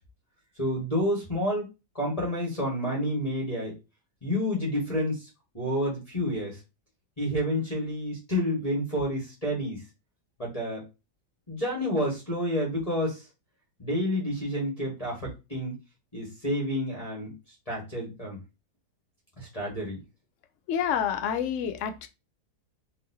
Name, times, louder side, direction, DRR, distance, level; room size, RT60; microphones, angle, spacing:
voice 1, 0.6-1.7 1.9-3.7 4.2-5.3 5.5-6.6 7.2-9.8 10.4-10.8 11.5-13.2 13.8-15.7 16.1-17.3 17.7-18.4 19.4-20.0, equal, 20° left, -3 dB, 1.6 m, -29 dB
voice 2, 20.7-22.1, left 8 dB, 65° left, 9 dB, 0.8 m, -28 dB
4.1 x 3.6 x 2.7 m, 0.27 s
omnidirectional pair, 1.8 m